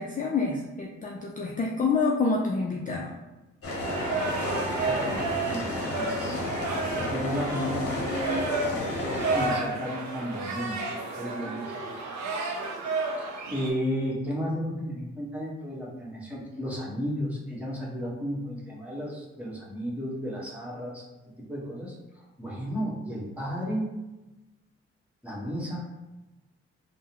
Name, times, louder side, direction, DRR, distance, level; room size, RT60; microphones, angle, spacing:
voice 1, 0.0-3.1, left 4 dB, 25° left, -1 dB, 0.4 m, -27 dB
sound 1, 3.6-9.5, left 1 dB, 50° left, 0.9 m, -32 dB
sound 2, 3.9-13.7, right 3 dB, 65° right, 0.7 m, -32 dB
voice 2, 4.8-5.6 5.9-6.7 7.0-8.9 9.3-10.9 11.1-11.8 13.5-21.0 21.4-23.9 25.2-25.8, equal, 5° right, -5 dB, 1.2 m, -33 dB
3.5 x 2.1 x 2.9 m, 1.1 s
supercardioid pair, 50°, 30 cm